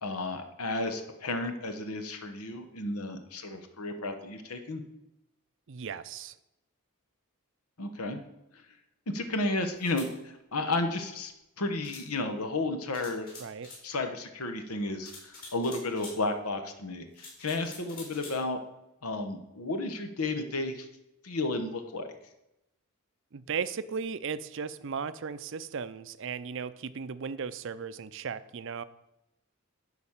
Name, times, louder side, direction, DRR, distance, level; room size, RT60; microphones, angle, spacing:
voice 1, 0.0-4.8 7.8-8.2 9.1-11.3 11.6-13.3 13.8-18.6 19.0-20.9 21.2-22.1, left 2 dB, 85° left, 7 dB, 1.1 m, -33 dB
voice 2, 5.7-6.3 13.4-13.7 23.3-28.8, right 6 dB, 60° right, 14 dB, 0.5 m, -36 dB
sound 1, 9.8-10.1 11.8-12.1 12.9-13.8 15.0-16.2 17.1-18.4, left 3 dB, 40° left, 3.9 m, -46 dB
11.0 x 4.1 x 7.2 m, 0.89 s
head